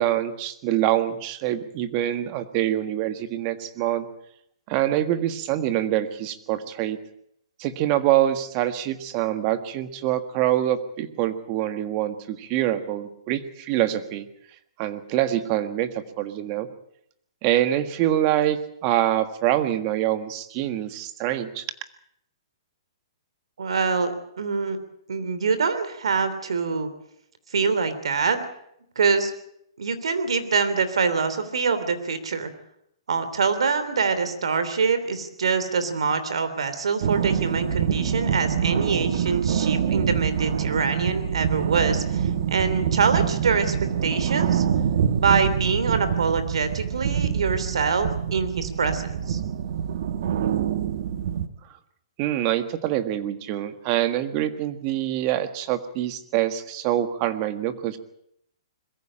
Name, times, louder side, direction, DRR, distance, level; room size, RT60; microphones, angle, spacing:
voice 1, 0.0-4.1 4.7-7.0 7.6-14.3 14.8-16.7 17.4-21.7 52.2-58.0, right 12 dB, 35° right, 10 dB, 1.6 m, -25 dB
voice 2, 23.6-24.8 25.1-26.9 27.5-28.4 28.9-29.3 29.8-32.5 33.1-43.8 44.0-44.6 45.1-49.4, right 5 dB, 85° right, 11 dB, 3.1 m, -25 dB
sound 1, 37.0-51.5, right 8 dB, 60° right, 1.5 m, -25 dB
21.5 x 15.0 x 8.8 m, 0.74 s
hypercardioid pair, 150°, 3 cm